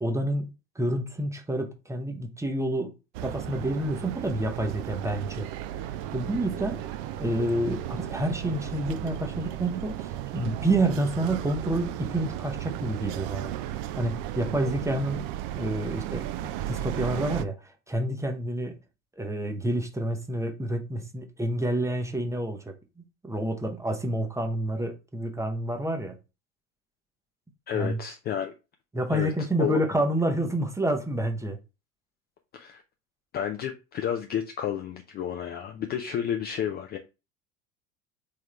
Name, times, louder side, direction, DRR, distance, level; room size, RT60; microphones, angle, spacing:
voice 1, 0.0-2.9 3.2-5.5 6.1-6.8 7.2-13.6 14.0-15.3 15.5-18.8 19.2-26.2 27.7-28.0 28.9-31.6, right 1 dB, 5° right, 0.7 m, -29 dB
sound 1, 3.1-17.4, right 12 dB, 45° right, 0.4 m, -35 dB
voice 2, 27.7-28.5 29.1-29.3 29.6-29.8 32.5-32.8 33.3-37.0, left 9 dB, 25° left, 0.4 m, -31 dB
3.6 x 3.3 x 3.3 m
figure-of-eight pair, 70°, 41 cm